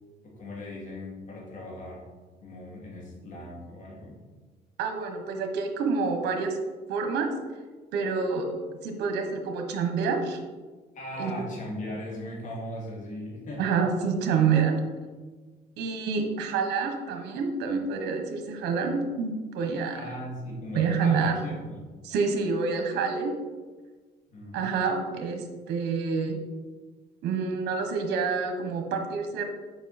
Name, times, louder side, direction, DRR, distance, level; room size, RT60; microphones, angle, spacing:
voice 1, 0.2-2.0 2.4-4.2 10.9-14.1 19.9-21.8 24.3-24.7, left 1 dB, 50° left, -3 dB, 2.5 m, -38 dB
voice 2, 4.8-6.6 6.9-7.3 7.9-8.5 8.8-10.4 11.2-11.3 13.6-14.8 15.8-20.0 20.7-21.3 22.0-23.3 24.5-26.4 27.2-29.4, right 5 dB, 80° right, 4 dB, 1.3 m, -27 dB
7.3 x 5.6 x 4.3 m, 1.3 s
cardioid pair, 110°, 17 cm